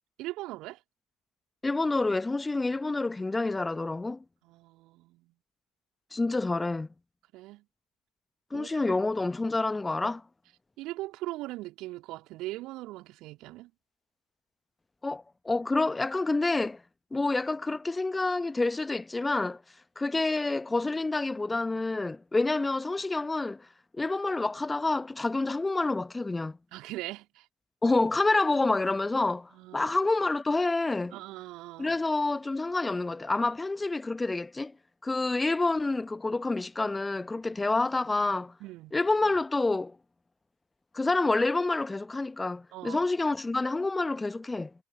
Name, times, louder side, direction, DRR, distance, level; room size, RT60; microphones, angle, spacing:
voice 1, 0.2-0.8 4.4-5.3 7.3-7.6 8.5-8.8 10.8-13.7 26.7-27.5 29.5-29.9 31.1-32.0 38.6-38.9 42.7-43.0, right 18 dB, 55° right, 2.7 m, -40 dB
voice 2, 1.6-4.2 6.1-6.9 8.5-10.2 15.0-16.8 17.1-19.6 20.0-23.7 23.9-26.6 27.8-31.1 31.8-34.7 35.0-38.5 38.9-40.0 40.9-44.7, left 3 dB, 15° left, 1.0 m, -28 dB
figure-of-eight pair, 65°, 0 cm